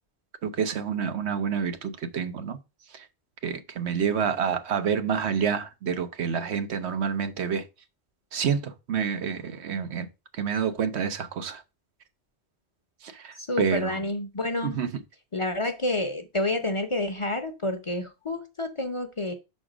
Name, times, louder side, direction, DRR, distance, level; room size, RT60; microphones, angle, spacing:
voice 1, 0.4-2.6 3.4-7.6 8.3-10.1 10.4-11.6 13.1-14.0 14.6-14.9, right 7 dB, 75° right, 1.1 m, -28 dB
voice 2, 13.3-14.8 15.3-19.3, left 1 dB, 30° left, 0.7 m, -29 dB
6.0 x 4.4 x 4.9 m
omnidirectional pair, 1.1 m